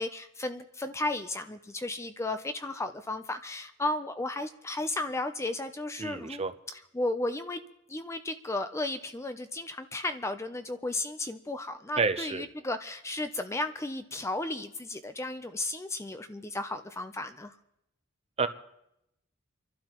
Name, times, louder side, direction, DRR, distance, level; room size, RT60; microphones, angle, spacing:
voice 1, 0.0-6.4 6.9-7.6 7.9-17.5, left 2 dB, 15° left, 9 dB, 0.4 m, -34 dB
voice 2, 6.0-6.5 12.0-12.4 18.4-18.5, right 4 dB, 30° right, 10 dB, 0.6 m, -29 dB
29.5 x 12.0 x 3.0 m, 0.83 s
head